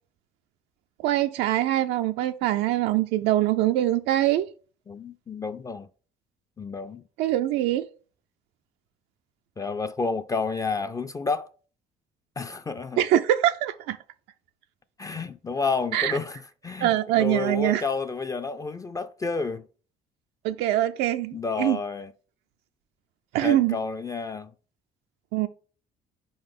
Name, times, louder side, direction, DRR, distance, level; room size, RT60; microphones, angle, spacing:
voice 1, 1.0-4.5 7.2-7.9 13.0-14.0 15.9-16.2 16.8-17.8 20.4-21.8 23.3-23.8 25.3-25.5, right 13 dB, 90° right, 0.4 m, -23 dB
voice 2, 4.9-5.9 6.6-7.0 9.6-11.5 12.4-13.0 15.0-19.6 21.3-22.1 23.4-24.5, left 4 dB, 20° left, 0.3 m, -30 dB
4.7 x 3.9 x 5.2 m
cardioid pair, 110°, 17 cm